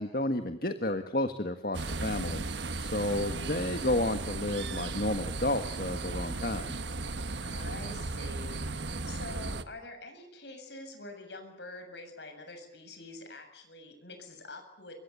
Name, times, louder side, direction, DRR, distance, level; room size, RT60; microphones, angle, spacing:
voice 1, 0.0-2.4 2.8-6.7, left 1 dB, 50° left, 7 dB, 1.7 m, -31 dB
sound 1, 1.7-9.6, right 3 dB, 75° right, 1.4 m, -36 dB
voice 2, 3.0-3.8 7.4-8.6 9.1-14.9, left 2 dB, 70° left, 6 dB, 7.5 m, -46 dB
29.0 x 25.0 x 7.1 m, 0.73 s
head